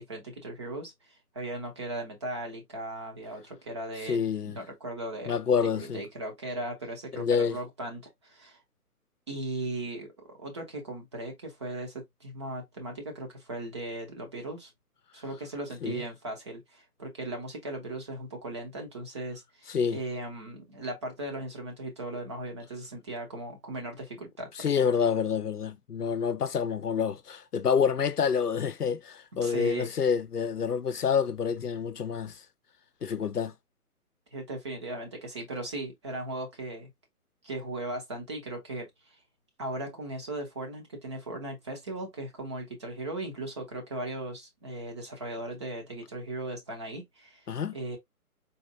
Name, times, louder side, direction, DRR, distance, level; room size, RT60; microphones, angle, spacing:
voice 1, 0.0-5.4 5.7-8.6 9.3-14.7 15.1-24.9 29.4-29.9 34.3-36.9 37.4-39.1 39.6-47.5 47.7-48.0, right 2 dB, 20° right, 0.7 m, -38 dB
voice 2, 4.1-4.5 5.3-6.0 7.2-7.6 15.8-16.0 19.7-20.0 24.6-32.4 33.0-33.5 47.5-47.8, left 6 dB, 85° left, 0.7 m, -27 dB
4.1 x 2.9 x 2.5 m
figure-of-eight pair, 135°, 45 cm